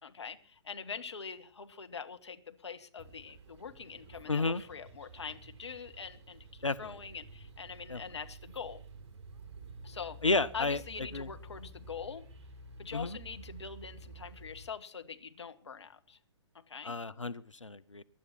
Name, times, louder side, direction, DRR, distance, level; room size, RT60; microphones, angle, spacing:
voice 1, 0.0-8.8 9.8-10.3 10.5-12.3 12.8-16.2 16.7-16.9, left 6 dB, 65° left, 8 dB, 1.7 m, -44 dB
sound 1, 3.0-14.7, right 3 dB, 30° right, 3.7 m, -51 dB
voice 2, 4.3-4.6 6.6-6.9 7.9-8.0 10.2-10.8 11.1-11.3 12.9-13.2 16.8-18.0, left 3 dB, 80° left, 14 dB, 0.9 m, -31 dB
23.5 x 11.0 x 4.4 m, 0.43 s
figure-of-eight pair, 120°, 16 cm